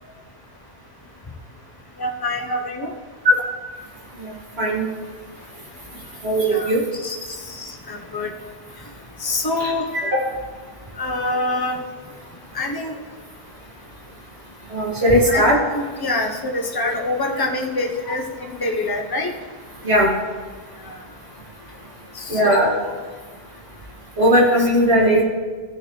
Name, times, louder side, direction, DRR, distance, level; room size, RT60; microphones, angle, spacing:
voice 1, 2.0-2.9 5.9-6.0 6.4-6.7 7.0-8.3 8.7-10.0 10.9-11.9 12.5-13.0 15.3-19.3 20.8-21.0 22.1-23.0, left 2 dB, 20° left, 0 dB, 1.0 m, -26 dB
voice 2, 6.2-6.8 9.6-9.7 14.7-15.5 19.8-20.1 22.3-22.7 24.2-25.2, equal, 75° right, -5 dB, 2.7 m, -17 dB
15.0 x 6.5 x 3.2 m, 1.5 s
omnidirectional pair, 1.1 m